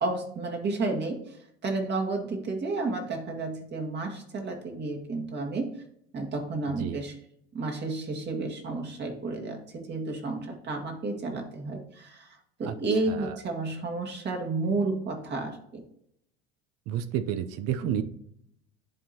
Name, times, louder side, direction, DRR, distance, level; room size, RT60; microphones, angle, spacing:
voice 1, 0.0-1.2 1.6-5.7 6.1-7.1 7.5-15.8 17.8-18.0, right 3 dB, 35° right, 2 dB, 1.8 m, -31 dB
voice 2, 6.7-7.0 12.6-13.4 16.9-18.0, right 10 dB, 55° right, 12 dB, 0.7 m, -31 dB
10.5 x 3.7 x 2.9 m, 0.71 s
hypercardioid pair, 85°, 29 cm